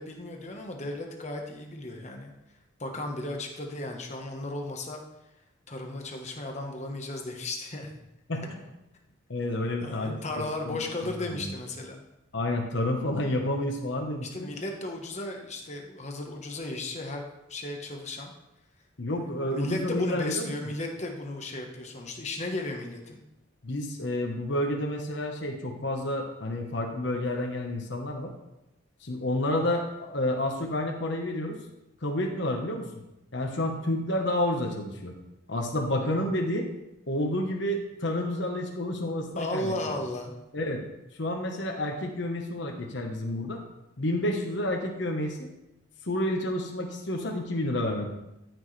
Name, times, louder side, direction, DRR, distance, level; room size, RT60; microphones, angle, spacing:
voice 1, 0.0-2.3 2.8-5.0 5.7-7.9 9.8-12.0 14.3-17.2 17.5-18.3 19.1-23.2 39.3-40.3, left 2 dB, 35° left, 2 dB, 1.2 m, -35 dB
voice 2, 8.3-8.6 9.3-10.8 11.3-11.5 12.3-14.5 19.0-20.5 23.6-28.3 29.0-31.6 32.0-32.9 33.3-35.2 35.5-36.7 37.1-39.7 40.5-40.8 41.2-43.6 44.0-45.5 46.0-48.1, left 1 dB, 65° left, 2 dB, 1.2 m, -30 dB
13.5 x 6.3 x 3.3 m, 0.90 s
head